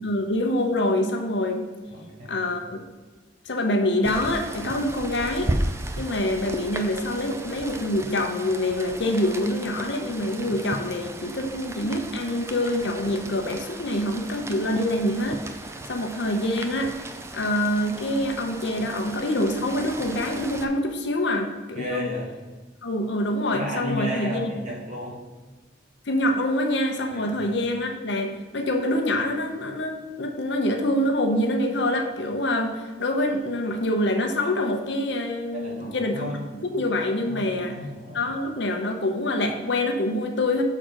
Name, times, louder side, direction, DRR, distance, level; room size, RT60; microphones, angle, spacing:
voice 1, 0.0-1.6 2.3-2.8 3.4-5.5 6.0-15.4 15.9-16.9 17.3-22.1 22.8-24.6 26.1-36.3 36.7-37.8 38.1-40.6, left 1 dB, 65° left, 4 dB, 0.8 m, -25 dB
voice 2, 1.9-2.4 21.7-22.3 23.5-25.2 27.1-27.3 35.5-36.4 37.2-38.3, equal, 40° right, -4 dB, 2.0 m, -33 dB
Rain, 4.0-20.7, right 1 dB, 15° right, 0.4 m, -35 dB
6.3 x 3.9 x 6.3 m, 1.3 s
head